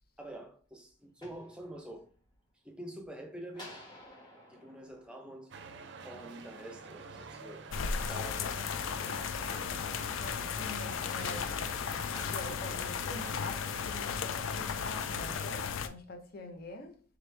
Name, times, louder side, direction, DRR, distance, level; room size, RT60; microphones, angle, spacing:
voice 1, 0.2-2.1 2.6-3.8 4.5-5.6 6.0-9.1, right 1 dB, 5° right, 0.7 m, -47 dB
sound 1, 1.0-2.2 3.5-6.0 10.4-14.5, equal, 25° left, 1.4 m, -53 dB
sound 2, 5.5-15.6, right 4 dB, 60° right, 0.4 m, -48 dB
sound 3, 7.7-15.9, left 7 dB, 85° left, 0.4 m, -35 dB
voice 2, 10.1-11.5 12.3-17.0, left 2 dB, 50° left, 0.8 m, -45 dB
3.7 x 3.0 x 3.3 m
head